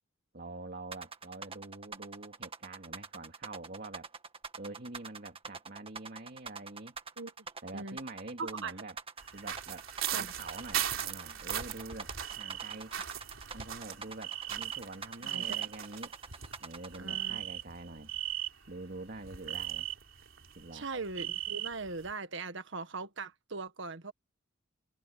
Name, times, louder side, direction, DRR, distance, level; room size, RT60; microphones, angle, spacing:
voice 1, 0.3-4.1 4.5-7.0 7.6-9.0 9.3-12.9 13.5-16.1 16.6-18.1 18.7-19.9 20.6-20.9, right 2 dB, 50° right, 2.2 m, -46 dB
sound 1, 0.9-17.0, right 5 dB, 30° right, 1.8 m, -44 dB
voice 2, 8.4-8.7 10.1-10.3 15.2-15.6 17.0-17.4 20.7-24.1, right 3 dB, 65° right, 1.6 m, -40 dB
sound 2, 9.2-18.8 19.1-22.1, right 11 dB, 90° right, 3.5 m, -38 dB
head